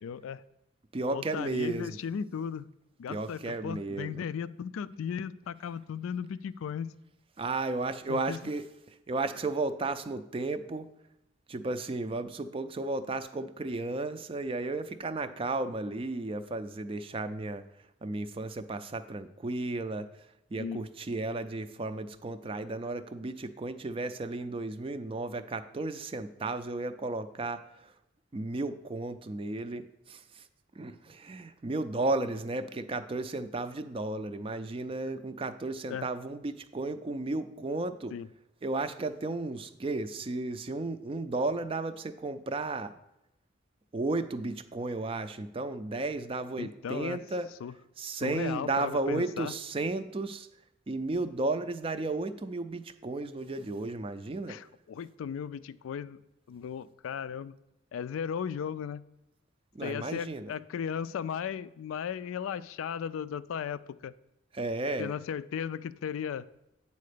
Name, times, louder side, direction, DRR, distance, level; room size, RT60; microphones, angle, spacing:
voice 1, 0.0-0.4 1.1-2.7 3.0-6.9 8.1-8.4 20.6-20.8 35.9-36.1 38.1-38.3 46.6-47.2 47.6-47.7 48.0-49.5 54.5-56.2 56.5-57.5 57.9-59.0 59.8-64.1 65.0-66.5, left 7 dB, 80° left, 16 dB, 0.3 m, -36 dB
voice 2, 0.9-2.0 3.1-4.2 7.4-10.9 11.5-17.6 18.0-20.1 20.5-27.9 28.3-30.5 30.8-38.1 38.6-42.9 43.9-47.5 48.0-50.5 50.9-54.6 59.7-60.5 64.5-65.1, right 2 dB, 25° right, 11 dB, 0.3 m, -34 dB
8.4 x 4.2 x 6.6 m, 0.86 s
head